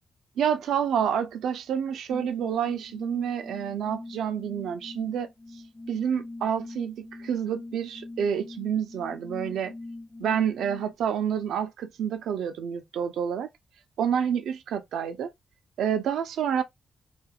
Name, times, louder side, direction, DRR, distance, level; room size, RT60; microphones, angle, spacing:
voice 1, 0.4-5.3 5.9-9.7 10.2-13.5 14.0-15.3 15.8-16.6, right 8 dB, 85° right, 0.4 m, -28 dB
sound 1, 2.1-10.9, left 2 dB, 15° left, 0.4 m, -43 dB
2.4 x 2.4 x 2.7 m
cardioid pair, 65°, 0 cm